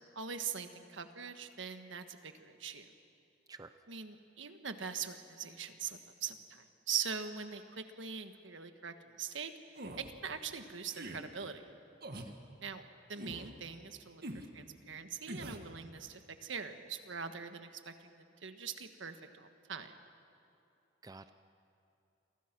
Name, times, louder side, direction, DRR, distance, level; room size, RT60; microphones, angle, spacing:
voice 1, 0.1-2.9 3.9-9.5 10.0-11.6 12.6-12.8 13.1-14.2 14.5-19.9, right 7 dB, 75° right, 8 dB, 1.5 m, -42 dB
voice 2, 3.5-3.7 12.1-12.4 21.0-21.3, right 3 dB, 20° right, 10 dB, 0.5 m, -50 dB
sound 1, 9.7-10.1 10.9-11.2 12.0-12.3 13.2-13.5 14.2-14.5 15.3-15.7, right 1 dB, 55° right, 1.8 m, -44 dB
29.5 x 24.5 x 6.1 m, 2.7 s
head